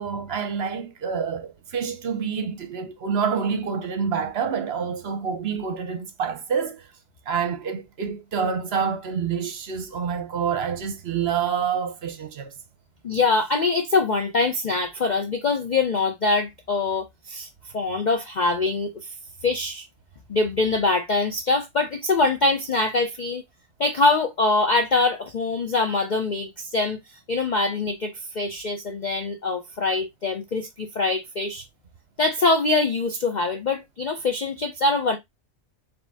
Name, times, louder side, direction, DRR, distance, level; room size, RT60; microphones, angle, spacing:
voice 1, 0.0-6.9 7.3-12.6, right 6 dB, 55° right, 0.9 m, -27 dB
voice 2, 13.0-17.5 17.7-19.1 19.4-19.8 20.3-23.4 23.8-27.0 27.3-31.6 32.2-35.2, left 3 dB, 50° left, 0.6 m, -23 dB
5.0 x 2.8 x 3.4 m
omnidirectional pair, 1.4 m